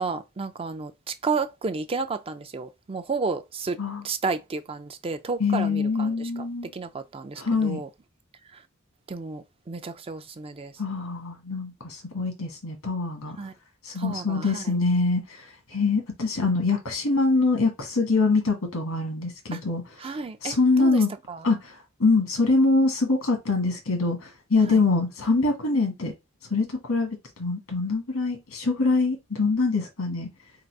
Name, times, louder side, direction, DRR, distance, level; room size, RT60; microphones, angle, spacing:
voice 1, 0.0-3.8 4.0-6.5 6.7-7.9 8.5-8.6 9.1-10.8 13.4-13.5 14.0-14.8 19.5-19.6 20.0-21.5 24.6-24.8, right 4 dB, 25° right, 0.4 m, -32 dB
voice 2, 5.4-6.7 7.4-7.8 10.8-13.4 13.8-15.2 15.7-19.8 20.4-21.1 21.4-21.7 22.0-26.1 26.5-30.3, left 3 dB, 90° left, 1.6 m, -24 dB
3.9 x 2.3 x 4.6 m
head